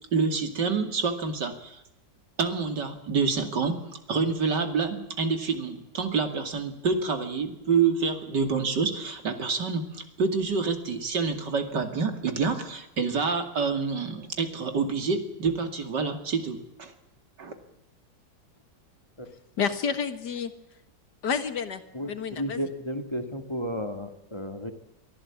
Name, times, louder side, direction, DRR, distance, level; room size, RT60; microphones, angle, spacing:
voice 1, 0.1-1.8 2.4-3.8 4.1-16.9 17.4-17.5, right 5 dB, 75° right, 7 dB, 3.0 m, -27 dB
voice 2, 19.6-20.5 21.2-21.8 22.1-22.6, left 6 dB, 70° left, 10 dB, 2.1 m, -29 dB
voice 3, 21.9-24.7, equal, 15° left, 7 dB, 2.0 m, -33 dB
24.0 x 14.0 x 8.5 m, 0.87 s
omnidirectional pair, 1.9 m